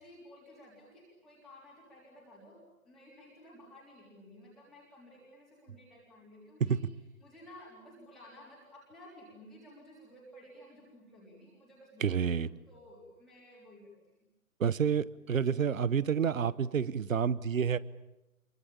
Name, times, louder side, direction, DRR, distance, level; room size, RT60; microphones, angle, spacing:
voice 1, 0.0-6.8 7.2-12.3 12.7-14.1, left 1 dB, ahead, -8 dB, 3.6 m, -54 dB
voice 2, 12.0-12.5 14.6-17.8, right 7 dB, 60° right, 19 dB, 1.1 m, -29 dB
28.0 x 23.5 x 8.7 m, 0.94 s
hypercardioid pair, 160°, 44 cm